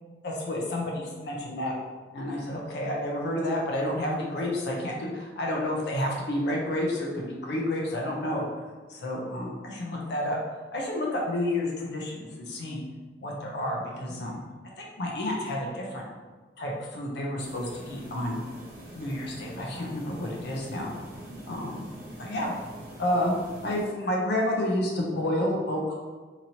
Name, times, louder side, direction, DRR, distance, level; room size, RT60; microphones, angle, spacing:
voice 1, 0.2-1.7 2.1-8.6 8.9-10.4 10.7-12.8 13.2-14.4 14.8-16.0 16.6-18.4 18.9-20.9 21.5-21.9 22.2-22.5 23.0-23.3 23.6-26.0, left 1 dB, 65° left, -2 dB, 0.5 m, -30 dB
sound 1, 17.4-23.9, right 1 dB, 55° right, 0.8 m, -45 dB
2.9 x 2.6 x 2.8 m, 1.4 s
head